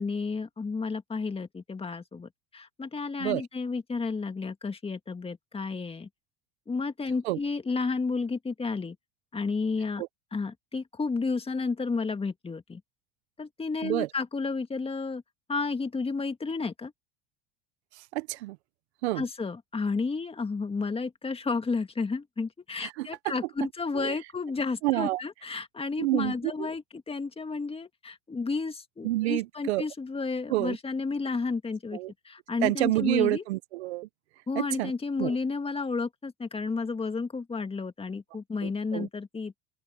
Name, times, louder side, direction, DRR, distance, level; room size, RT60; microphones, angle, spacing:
voice 1, 0.0-6.1 6.7-9.0 9.3-10.0 10.3-12.8 13.4-15.2 15.5-16.9 19.1-33.4 34.5-39.6, left 4 dB, 20° left, 2.1 m, -32 dB
voice 2, 18.1-18.6 19.0-19.2 22.8-23.1 23.9-24.2 24.8-25.2 26.0-26.3 26.6-26.7 29.0-29.8 30.5-30.8 31.9-32.1 32.6-34.1 34.5-34.9 35.2-35.4 38.6-39.1, right 18 dB, 90° right, 0.8 m, -28 dB
open air
supercardioid pair, 105°, 32 cm